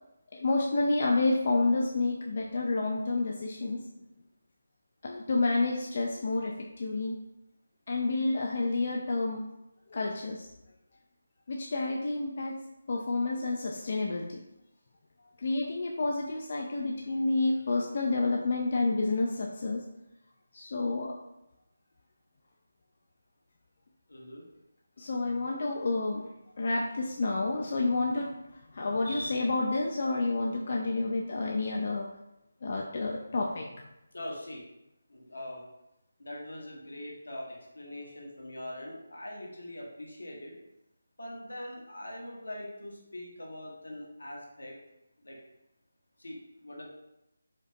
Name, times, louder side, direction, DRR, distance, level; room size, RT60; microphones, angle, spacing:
voice 1, 0.3-3.8 5.0-7.2 7.9-9.4 9.9-10.5 11.5-12.5 12.9-14.4 15.4-19.8 20.5-21.1 25.0-26.3 26.6-32.1 32.6-33.7, left 3 dB, 50° left, -1 dB, 0.4 m, -29 dB
voice 2, 24.1-24.4 34.1-34.6 35.1-35.6 36.2-40.6 41.2-44.8 45.2-45.4 46.2-46.8, left 1 dB, 85° left, -2 dB, 1.1 m, -42 dB
5.0 x 2.1 x 2.7 m, 0.90 s
figure-of-eight pair, 160°, 0 cm